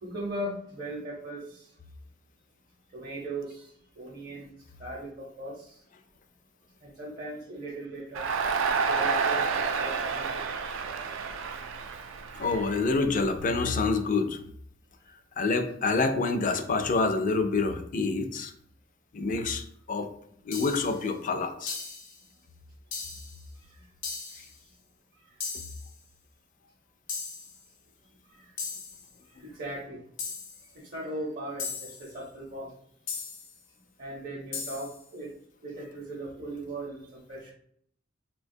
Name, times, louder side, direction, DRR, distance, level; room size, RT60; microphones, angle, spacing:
voice 1, 0.0-1.7 2.9-4.5 4.8-5.8 6.8-8.2 8.8-10.4 23.8-23.9 28.3-28.5 29.4-30.0 30.8-32.7 34.0-35.3 35.6-37.5, right 1 dB, 55° right, -3 dB, 0.7 m, -38 dB
Crowd, 8.1-13.3, right 5 dB, 80° right, 0.3 m, -29 dB
voice 2, 12.4-14.4 15.4-18.5 19.1-20.1 20.4-21.8, left 3 dB, 45° left, 7 dB, 0.4 m, -27 dB
sound 1, 20.5-21.0 21.7-22.2 22.9-23.4 24.0-24.5 25.4-25.9 27.1-27.6 28.6-29.1 30.2-30.7 31.6-32.1 33.1-33.6 34.5-35.0, left 5 dB, 80° left, 0.7 m, -37 dB
3.8 x 2.3 x 2.6 m, 0.68 s
head